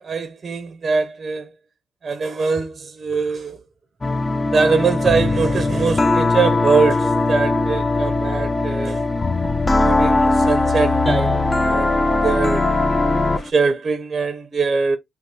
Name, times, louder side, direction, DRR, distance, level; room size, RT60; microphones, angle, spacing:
voice 1, 0.0-1.5 2.0-3.6 4.5-9.0 9.8-11.4 11.6-11.9 12.2-12.6 13.4-15.0, right 4 dB, 35° right, 0.5 m, -22 dB
sound 1, 4.0-13.5, left 2 dB, 20° left, 0.4 m, -19 dB
2.6 x 2.3 x 3.7 m
cardioid pair, 90°, 0 cm